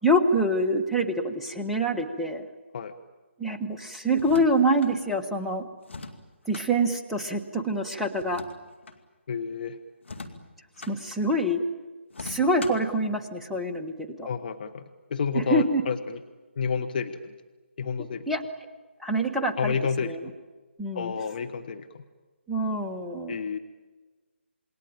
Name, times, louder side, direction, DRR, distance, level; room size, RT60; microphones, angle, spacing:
voice 1, 0.0-2.4 3.4-5.7 6.5-8.4 10.9-11.6 12.2-14.3 15.3-15.8 18.0-18.4 19.0-19.8 20.0-20.2 20.8-21.1 22.5-23.4, right 1 dB, ahead, 0 dB, 1.3 m, -26 dB
sound 1, 4.1-4.9 5.8-6.7 8.1-9.0 10.0-11.0 12.1-12.9, left 3 dB, 70° left, 2.5 m, -41 dB
voice 2, 9.3-9.8 14.2-14.8 15.1-16.2 16.6-17.3 17.8-18.3 19.6-20.2 20.9-22.0 23.3-23.6, left 6 dB, 45° left, 8 dB, 1.2 m, -30 dB
28.0 x 21.0 x 9.0 m, 1.3 s
figure-of-eight pair, 150°, 7 cm